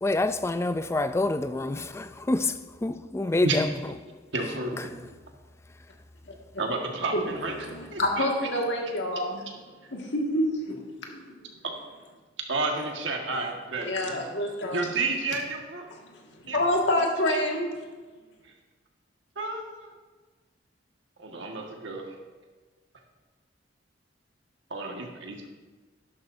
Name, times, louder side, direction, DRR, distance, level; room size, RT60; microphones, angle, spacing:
voice 1, 0.0-2.5 2.8-3.7, left 2 dB, 15° left, 0.3 m, -26 dB
voice 2, 4.3-5.0 6.6-7.5 7.9-8.5 11.6-11.7 12.5-14.2 14.7-15.8 16.5-16.6 17.3-17.4 19.3-19.9 21.2-22.0 24.7-25.5, right 3 dB, 80° right, 1.5 m, -31 dB
voice 3, 7.1-9.3 9.9-11.4 13.8-14.9 16.0-16.2 16.5-17.7, left 1 dB, 75° left, 1.8 m, -28 dB
12.0 x 11.5 x 2.6 m
head